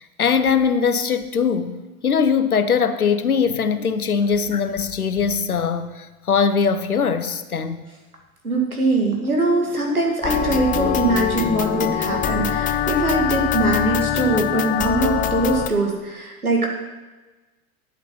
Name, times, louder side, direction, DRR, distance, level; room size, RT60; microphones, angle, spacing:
voice 1, 0.0-7.8, left 6 dB, 85° left, 12 dB, 0.8 m, -21 dB
voice 2, 8.4-16.7, right 2 dB, 85° right, 0 dB, 2.2 m, -22 dB
sound 1, 10.2-15.7, left 9 dB, 20° left, 0.6 m, -23 dB
11.0 x 8.2 x 5.5 m, 1.2 s
figure-of-eight pair, 80°, 43 cm